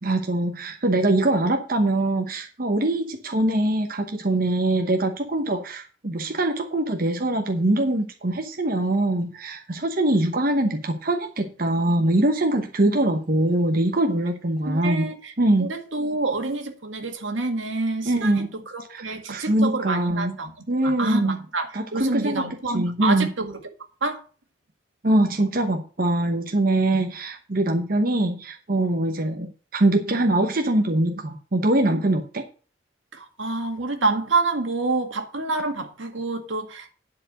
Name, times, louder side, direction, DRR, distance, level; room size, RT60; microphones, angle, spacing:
voice 1, 0.0-15.1 15.4-15.7 18.1-18.5 18.9-20.3 20.7-21.4 21.7-22.4 22.7-23.3 25.0-32.4, right 1 dB, 45° right, 0.9 m, -23 dB
voice 2, 14.7-15.3 15.6-20.5 20.8-23.5 24.0-24.2 33.1-36.9, right 3 dB, 85° right, 1.9 m, -27 dB
10.5 x 4.6 x 7.5 m
head